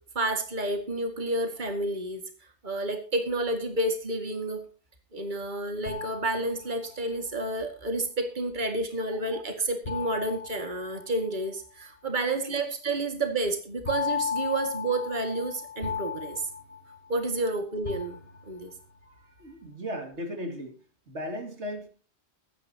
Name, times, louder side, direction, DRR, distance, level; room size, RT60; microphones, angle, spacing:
voice 1, 0.2-2.2 2.6-4.6 5.1-16.5 17.1-18.2 18.5-18.7, right 2 dB, 45° right, 6 dB, 2.3 m, -30 dB
sound 1, 5.9-7.1 9.9-11.5 13.9-17.4 17.9-18.8, left 7 dB, 60° left, 1.5 m, -35 dB
voice 2, 19.4-20.8 21.1-21.9, equal, 85° right, 5 dB, 3.0 m, -36 dB
22.5 x 10.0 x 2.9 m, 0.37 s
omnidirectional pair, 1.1 m